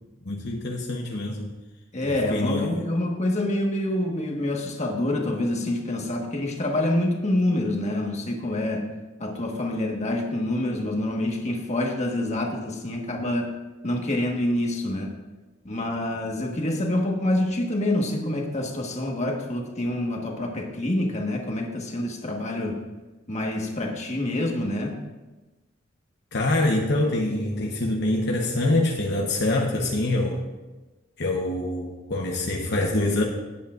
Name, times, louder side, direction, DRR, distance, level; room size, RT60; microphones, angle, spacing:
voice 1, 0.2-1.5 2.0-2.8 26.3-30.4 31.2-33.2, left 2 dB, 60° left, -1 dB, 1.0 m, -25 dB
voice 2, 1.9-8.9 9.2-13.5 13.8-15.1 15.6-22.8 23.3-25.0, left 1 dB, 35° left, 1 dB, 1.4 m, -26 dB
18.0 x 8.5 x 2.5 m, 1.2 s
head